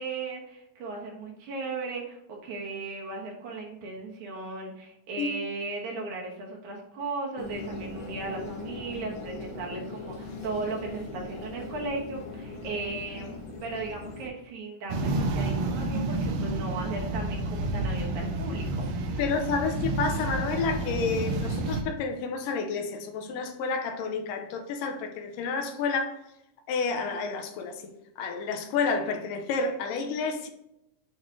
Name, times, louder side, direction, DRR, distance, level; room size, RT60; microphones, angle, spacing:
voice 1, 0.0-19.2, right 3 dB, 65° right, 2.5 m, -36 dB
sound 1, 7.4-14.3, left 3 dB, 65° left, 2.4 m, -40 dB
sound 2, 14.9-21.8, right 2 dB, 85° right, 1.4 m, -30 dB
voice 2, 19.2-26.2 26.7-30.5, left 4 dB, 85° left, 2.3 m, -30 dB
8.1 x 3.2 x 3.7 m
omnidirectional pair, 3.9 m